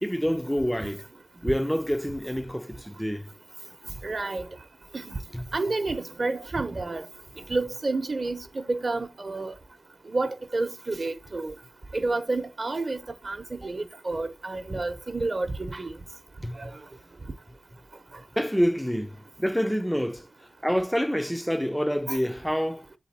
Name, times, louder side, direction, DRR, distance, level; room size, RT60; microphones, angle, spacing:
voice 1, 0.0-1.1 1.4-3.3 5.3-5.4 16.4-16.6 18.4-20.3 20.6-22.9, equal, 5° left, 0.5 m, -27 dB
voice 2, 4.0-4.4 4.9-5.1 5.5-7.0 7.5-9.5 10.1-11.5 11.9-13.0 13.2-13.4 13.6-15.9 16.6-16.7 22.1-22.2, right 3 dB, 45° right, 0.8 m, -29 dB
7.8 x 4.1 x 4.1 m
wide cardioid pair, 90°, 0 cm